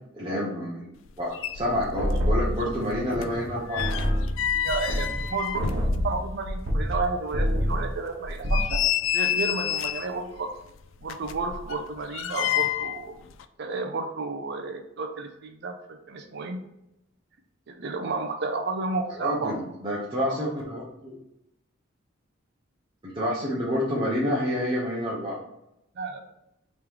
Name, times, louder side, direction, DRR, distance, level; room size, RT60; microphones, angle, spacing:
voice 1, 0.1-0.9 1.2-3.8 19.2-21.2 23.0-25.4, equal, 25° right, -7 dB, 0.9 m, -28 dB
sound 1, 1.1-1.2 1.3-2.3 2.6-6.6 6.9-7.0 7.5-7.6 8.2-10.2 11.0-13.0 13.3-13.4, left 11 dB, 70° left, 0.3 m, -29 dB
sound 2, 2.0-3.5 3.8-7.0 7.3-7.9 8.2-8.8, equal, 90° right, 1.0 m, -27 dB
voice 2, 4.5-8.8 9.1-10.5 11.0-13.1 13.6-16.6 17.7-19.5 20.3-20.4 26.0-26.2, right 3 dB, 55° right, 5 dB, 0.5 m, -32 dB
3.6 x 3.1 x 4.6 m, 0.85 s
head